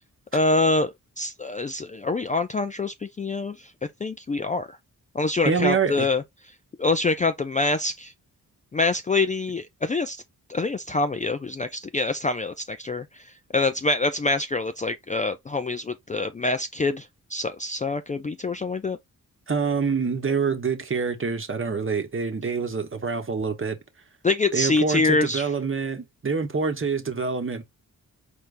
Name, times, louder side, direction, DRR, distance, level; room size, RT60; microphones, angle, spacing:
voice 1, 0.3-3.7 4.0-4.7 5.1-6.2 6.8-8.1 8.7-10.2 10.5-13.1 13.5-19.0 24.2-25.5, left 3 dB, 20° left, 0.4 m, -25 dB
voice 2, 5.4-6.1 19.5-23.8 24.5-27.6, right 5 dB, 35° right, 1.1 m, -26 dB
4.4 x 3.4 x 2.5 m
cardioid pair, 60°, 36 cm